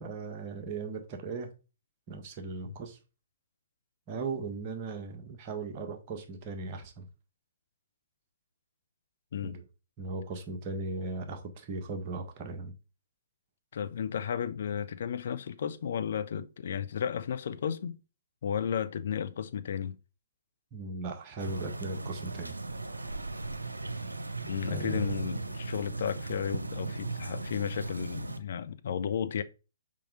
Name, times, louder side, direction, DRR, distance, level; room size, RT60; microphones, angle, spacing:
voice 1, 0.0-1.5 2.1-3.0 4.1-7.1 9.4-9.6 10.0-12.7 20.7-22.5 24.6-25.1, right 3 dB, 30° right, 1.6 m, -38 dB
voice 2, 13.7-18.0 18.4-20.0 24.4-29.4, left 8 dB, 55° left, 0.8 m, -33 dB
sound 1, 21.4-28.4, right 3 dB, 80° right, 0.8 m, -37 dB
5.7 x 5.2 x 5.0 m
figure-of-eight pair, 125°, 0 cm